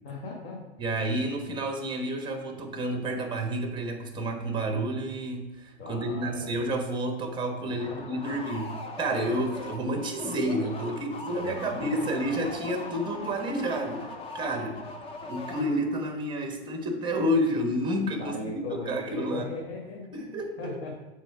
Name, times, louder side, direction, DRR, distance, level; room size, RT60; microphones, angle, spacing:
voice 1, 0.0-0.7 5.8-6.6 7.6-8.4 11.4-12.5 18.2-20.9, left 3 dB, 40° left, -1 dB, 1.2 m, -39 dB
voice 2, 0.8-14.9 15.3-19.5 20.1-20.9, right 1 dB, 15° right, 4 dB, 1.0 m, -30 dB
sound 1, 7.8-16.1, left 3 dB, 15° left, 0.6 m, -40 dB
7.2 x 3.2 x 4.8 m, 1.1 s
hypercardioid pair, 125°, 33 cm